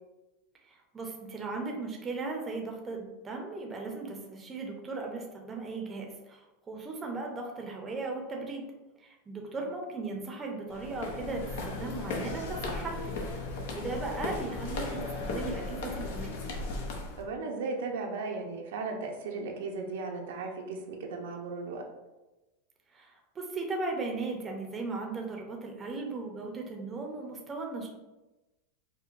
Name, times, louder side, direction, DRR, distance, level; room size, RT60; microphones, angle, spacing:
voice 1, 0.6-8.6 9.0-13.5 13.7-16.4 22.9-27.9, right 3 dB, 20° right, 1 dB, 0.5 m, -37 dB
sound 1, 10.7-17.2, left 2 dB, 75° left, 0.6 m, -36 dB
voice 2, 17.2-21.8, right 3 dB, 85° right, 2 dB, 0.5 m, -36 dB
4.5 x 2.1 x 2.5 m, 1.1 s
supercardioid pair, 150°, 0 cm